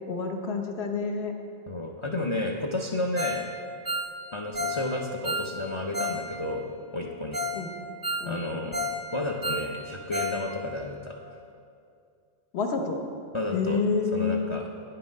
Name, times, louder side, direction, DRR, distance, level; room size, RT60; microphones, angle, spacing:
voice 1, 0.1-1.3 7.5-7.7 8.2-8.4 12.5-13.0 13.5-14.5, left 4 dB, 65° left, 3 dB, 1.0 m, -28 dB
voice 2, 1.7-3.5 4.3-7.4 8.2-11.4 13.3-13.8 14.1-14.7, left 2 dB, 40° left, 0 dB, 0.4 m, -32 dB
Ringtone, 3.2-3.5 3.7-6.2 6.5-6.6 7.0-7.1 7.3-7.6 7.9-9.0 9.3-10.4 10.7-10.8 11.2-11.3, left 1 dB, 30° right, 0.4 m, -31 dB
9.6 x 5.7 x 5.2 m, 2.4 s
omnidirectional pair, 1.2 m